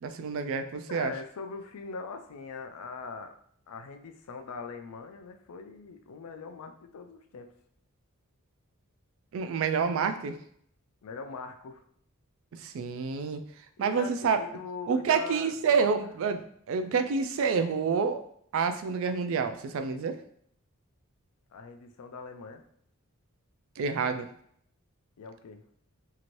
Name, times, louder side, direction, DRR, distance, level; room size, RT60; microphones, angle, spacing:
voice 1, 0.0-1.1 9.3-10.4 12.5-13.4 13.8-14.4 14.9-18.2 18.5-20.2 23.8-24.3, right 5 dB, 65° right, 8 dB, 0.3 m, -28 dB
voice 2, 0.9-3.4 3.7-7.5 11.0-11.8 13.8-15.9 21.5-22.6 25.2-25.6, left 4 dB, 90° left, 6 dB, 0.4 m, -42 dB
2.8 x 2.5 x 3.0 m, 0.65 s
head